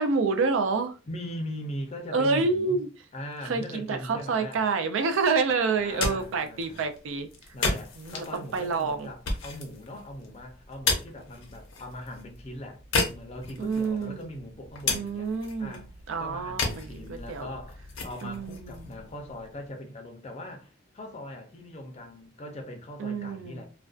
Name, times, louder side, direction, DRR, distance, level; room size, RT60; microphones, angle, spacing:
voice 1, 0.0-0.9 2.1-2.9 3.4-7.3 8.0-8.2 8.5-9.1 13.6-14.3 14.9-15.8 16.1-17.5 18.2-18.9 23.0-23.6, right 4 dB, 75° right, 0.4 m, -28 dB
voice 2, 1.1-2.8 3.1-4.6 5.7-6.9 7.5-15.3 15.6-15.9 16.2-23.7, left 1 dB, 35° left, 0.4 m, -40 dB
Digging with pick axe, 5.7-19.7, left 3 dB, 90° left, 0.6 m, -34 dB
2.5 x 2.1 x 2.3 m
head